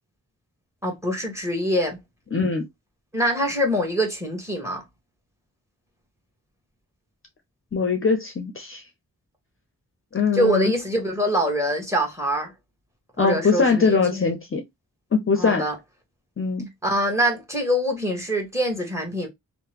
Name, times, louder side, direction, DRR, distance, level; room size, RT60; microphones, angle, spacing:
voice 1, 0.8-2.0 3.1-4.8 10.3-12.5 13.2-14.3 15.4-15.8 16.8-19.3, equal, 10° right, 1.2 m, -24 dB
voice 2, 2.3-2.7 7.7-8.8 10.1-10.7 13.2-14.6 15.1-15.6 16.4-16.7, left 4 dB, 35° left, 0.5 m, -22 dB
2.8 x 2.0 x 3.1 m
cardioid pair, 50°, 36 cm